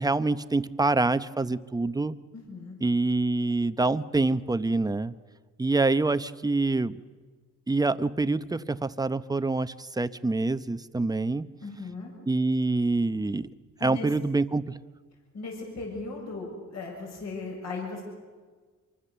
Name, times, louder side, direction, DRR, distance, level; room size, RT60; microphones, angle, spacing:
voice 1, 0.0-2.2 2.8-5.1 5.6-7.0 7.7-11.5 12.3-13.5 13.8-14.8, right 3 dB, 15° right, 13 dB, 0.8 m, -26 dB
voice 2, 2.3-2.8 11.6-12.1 13.8-14.1 15.3-18.0, left 3 dB, 60° left, 0 dB, 7.1 m, -37 dB
26.5 x 24.0 x 6.9 m, 1.5 s
cardioid pair, 90°, 30 cm